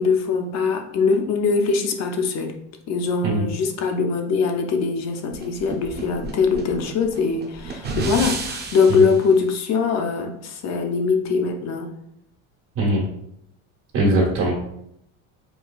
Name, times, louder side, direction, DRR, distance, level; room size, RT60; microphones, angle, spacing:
voice 1, 0.0-2.6 2.9-12.0, left 5 dB, 50° left, 4 dB, 0.6 m, -22 dB
sound 1, 5.3-9.2, right 3 dB, 30° right, 0.6 m, -31 dB
voice 2, 13.9-14.5, right 1 dB, 80° right, -5 dB, 1.4 m, -20 dB
4.6 x 2.2 x 2.3 m, 0.75 s
supercardioid pair, 110°, 35 cm